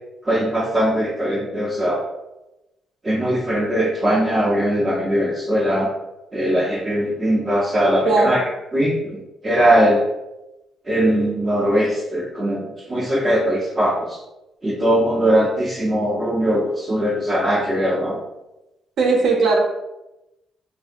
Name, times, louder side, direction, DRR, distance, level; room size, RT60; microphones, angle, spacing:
voice 1, 0.3-2.0 3.0-5.9 6.3-8.4 8.7-10.0 10.9-14.2 14.6-18.2, equal, 25° right, -5 dB, 0.5 m, -20 dB
voice 2, 8.1-8.4 19.0-19.6, right 3 dB, 70° right, 0 dB, 0.6 m, -17 dB
2.6 x 2.5 x 2.4 m, 0.96 s
cardioid pair, 90°, 0 cm